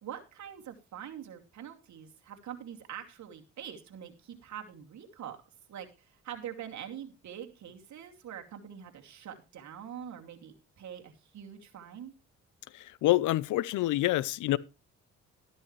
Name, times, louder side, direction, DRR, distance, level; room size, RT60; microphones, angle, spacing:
voice 1, 0.0-5.4 5.7-12.1, right 9 dB, 65° right, 2.6 m, -44 dB
voice 2, 12.7-14.6, left 16 dB, 80° left, 0.7 m, -27 dB
13.0 x 12.0 x 3.2 m
cardioid pair, 90°, 30 cm